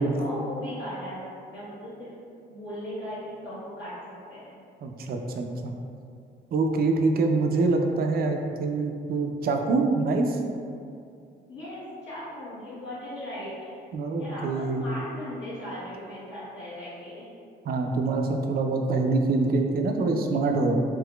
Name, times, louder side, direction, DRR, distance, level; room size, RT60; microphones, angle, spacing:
voice 1, 0.0-2.1 2.5-4.6 11.5-13.8 14.2-17.3, left 1 dB, 65° left, -11 dB, 1.2 m, -38 dB
voice 2, 4.8-5.7 6.5-10.4 13.9-14.8 17.7-20.8, right 3 dB, 50° right, 3 dB, 0.4 m, -25 dB
3.7 x 2.9 x 2.2 m, 2.4 s
cardioid pair, 90°, 20 cm